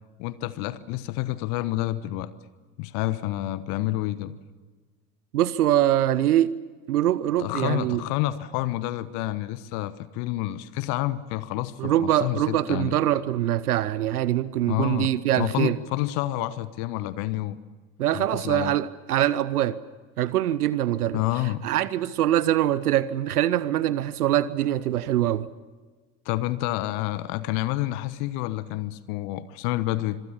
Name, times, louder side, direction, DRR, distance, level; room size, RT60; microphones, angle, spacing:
voice 1, 0.2-2.3 2.8-4.4 7.4-13.0 14.7-17.6 18.1-18.7 21.1-21.6 26.2-30.2, left 16 dB, 60° left, 1.2 m, -29 dB
voice 2, 5.3-6.5 6.9-8.0 11.8-15.8 18.0-19.8 20.2-21.2 21.6-25.5, right 12 dB, 75° right, 0.8 m, -23 dB
26.0 x 22.5 x 7.1 m
figure-of-eight pair, 60°, 45 cm